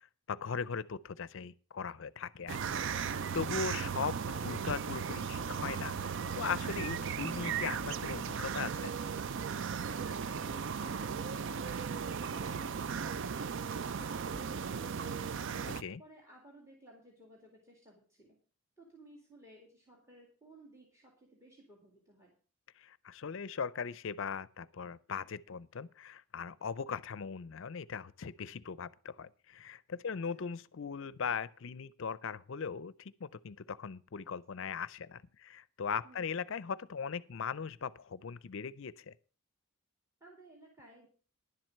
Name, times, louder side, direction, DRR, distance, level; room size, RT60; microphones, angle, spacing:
voice 1, 0.3-8.9 15.8-16.0 22.8-39.1, left 6 dB, 60° left, 0.5 m, -39 dB
sound 1, 2.5-15.8, right 6 dB, 55° right, 0.4 m, -36 dB
voice 2, 16.0-18.4 18.8-22.3 30.1-30.2 36.0-36.4 40.2-41.1, right 1 dB, 15° right, 2.3 m, -58 dB
11.0 x 7.6 x 6.5 m
head